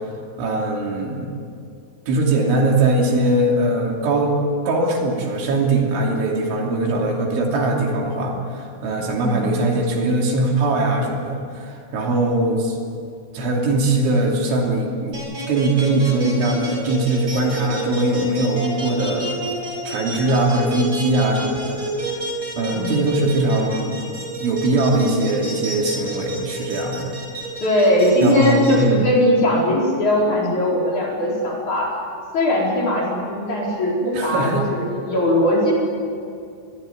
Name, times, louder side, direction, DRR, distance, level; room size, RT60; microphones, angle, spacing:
voice 1, 0.4-1.3 2.1-4.3 4.7-12.8 13.3-19.3 19.9-21.8 22.1-22.2 22.6-24.1 24.4-27.1 28.2-29.1 34.1-34.6, right 2 dB, 70° right, 0 dB, 5.1 m, -21 dB
voice 2, 9.1-9.5 22.7-23.1 27.6-31.9 32.3-35.7, left 1 dB, 40° left, -3 dB, 5.6 m, -19 dB
sound 1, 15.1-28.7, right 1 dB, 20° right, 5.1 m, -30 dB
23.5 x 21.5 x 8.5 m, 2.4 s
omnidirectional pair, 5.8 m